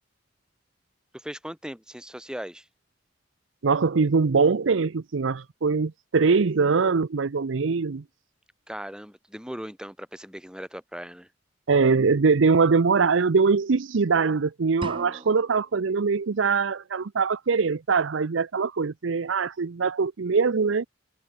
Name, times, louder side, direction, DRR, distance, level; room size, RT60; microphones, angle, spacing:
voice 1, 1.1-2.7 8.7-11.3, equal, 5° right, 3.4 m, -38 dB
voice 2, 3.6-8.0 11.7-20.9, right 4 dB, 80° right, 0.6 m, -22 dB
sound 1, 14.8-15.8, right 2 dB, 25° right, 1.1 m, -38 dB
head